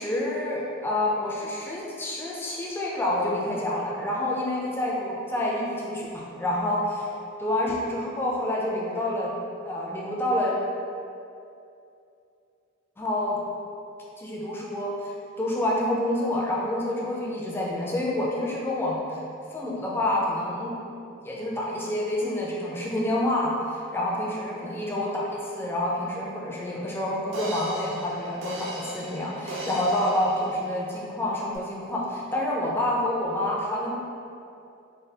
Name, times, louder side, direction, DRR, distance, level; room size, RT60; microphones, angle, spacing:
voice 1, 0.0-7.1 7.4-9.3 9.6-10.5 13.0-13.4 14.2-19.2 19.5-20.7 21.2-33.9, left 1 dB, 10° left, -4 dB, 0.3 m, -28 dB
sound 1, 27.3-31.1 31.5-31.6, right 1 dB, 60° right, 0.4 m, -37 dB
3.2 x 2.3 x 2.7 m, 2.6 s
head